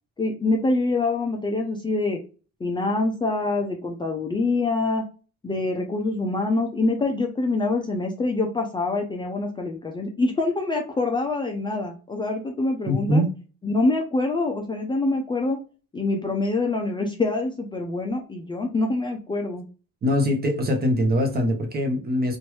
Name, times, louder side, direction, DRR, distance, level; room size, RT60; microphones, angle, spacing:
voice 1, 0.2-2.2 2.6-5.0 5.4-13.2 13.6-15.6 15.9-19.6, left 2 dB, 15° left, 0.5 m, -25 dB
voice 2, 12.9-13.3 20.0-22.4, equal, 30° right, 0.9 m, -22 dB
3.1 x 2.6 x 3.1 m
cardioid pair, 150°, 30 cm